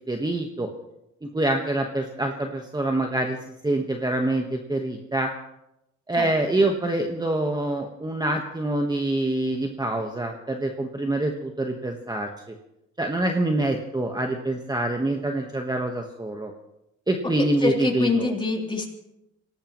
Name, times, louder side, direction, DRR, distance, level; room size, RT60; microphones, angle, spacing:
voice 1, 0.1-0.7 1.2-3.4 3.6-5.3 6.1-12.3 13.0-16.5 17.1-18.3, right 2 dB, 15° right, 3 dB, 1.4 m, -25 dB
voice 2, 17.4-18.9, left 3 dB, 15° left, 0 dB, 3.6 m, -25 dB
25.5 x 17.5 x 3.1 m, 0.88 s
cardioid pair, 90°, 30 cm